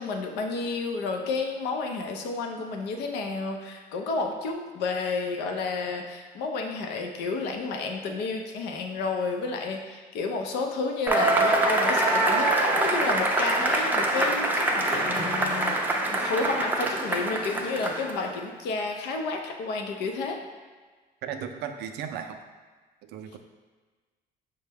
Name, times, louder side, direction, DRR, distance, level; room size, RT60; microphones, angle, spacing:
voice 1, 0.0-20.4, left 3 dB, 85° left, 3 dB, 0.6 m, -31 dB
Cheering / Applause / Crowd, 11.1-18.3, right 2 dB, 10° right, 0.4 m, -25 dB
voice 2, 21.2-22.4 23.1-23.4, right 8 dB, 80° right, 7 dB, 0.4 m, -35 dB
5.5 x 2.1 x 3.4 m, 1.4 s
cardioid pair, 110°, 17 cm